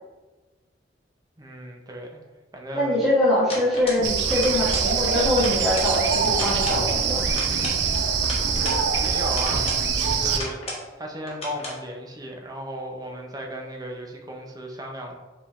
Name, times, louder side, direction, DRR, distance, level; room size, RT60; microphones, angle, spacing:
voice 1, 1.4-2.2 2.5-3.0 8.9-10.6 11.0-15.2, equal, 20° right, 1 dB, 0.6 m, -35 dB
voice 2, 2.7-7.2, left 1 dB, ahead, -9 dB, 1.1 m, -23 dB
sound 1, 3.5-4.1 4.3-4.9 5.2-5.9 6.3-6.8 7.3-8.8 9.3-9.9 10.2-10.9 11.3-11.8, left 1 dB, 35° left, 1.1 m, -34 dB
sound 2, 4.0-10.4, right 5 dB, 70° right, 0.5 m, -24 dB
4.9 x 3.5 x 2.5 m, 1.2 s
head